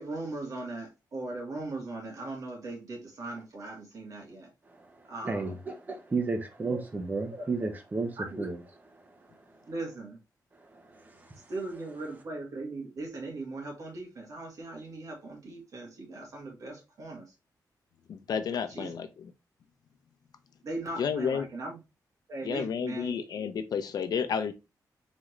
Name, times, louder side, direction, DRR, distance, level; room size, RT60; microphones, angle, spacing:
voice 1, 0.0-4.5 5.1-5.5 6.6-6.9 7.3-7.5 8.2-8.5 9.7-10.2 11.5-17.3 18.7-18.9 20.6-21.8 22.3-23.2, right 2 dB, 55° right, 2.1 m, -39 dB
voice 2, 5.2-8.1 8.4-8.5, right 3 dB, 25° right, 1.0 m, -32 dB
voice 3, 18.1-19.3 21.0-21.5 22.4-24.5, left 6 dB, 70° left, 0.7 m, -31 dB
4.1 x 3.7 x 3.2 m
wide cardioid pair, 150°, 7 cm